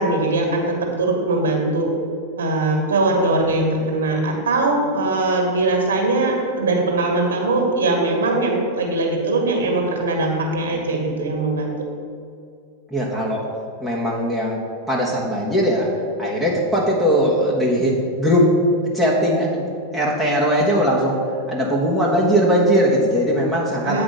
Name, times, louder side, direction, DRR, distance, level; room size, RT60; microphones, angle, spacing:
voice 1, 0.0-1.9 2.4-11.9 23.8-24.0, right 2 dB, 65° right, 1 dB, 1.9 m, -21 dB
voice 2, 12.9-13.4 13.8-14.6 14.9-15.9 16.2-18.5 18.9-24.0, equal, 5° left, -5 dB, 1.5 m, -19 dB
8.6 x 5.1 x 7.6 m, 2.4 s
figure-of-eight pair, 90°, 0 cm